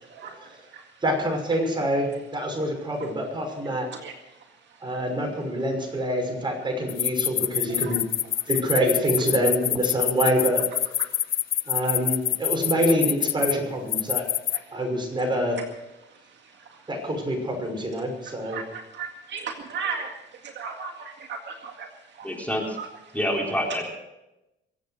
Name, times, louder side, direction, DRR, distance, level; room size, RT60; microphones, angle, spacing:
voice 1, 0.0-1.0 3.0-3.1 3.6-4.9 7.6-8.0 8.4-8.5 11.0-11.9 13.7-14.8 16.0-16.9 18.0-22.3 22.8-23.5, right 5 dB, 65° right, 2 dB, 2.1 m, -39 dB
voice 2, 1.0-3.9 4.8-8.0 8.5-10.7 11.7-14.3 14.7-15.6 16.9-18.6, equal, 25° right, 2 dB, 5.8 m, -26 dB
sound 1, 6.9-13.5 13.9-14.6, left 10 dB, 45° left, 0.4 m, -25 dB
voice 3, 22.2-22.8 23.1-23.8, equal, 5° left, 0 dB, 3.7 m, -27 dB
24.0 x 8.3 x 6.4 m, 0.95 s
cardioid pair, 90°, 20 cm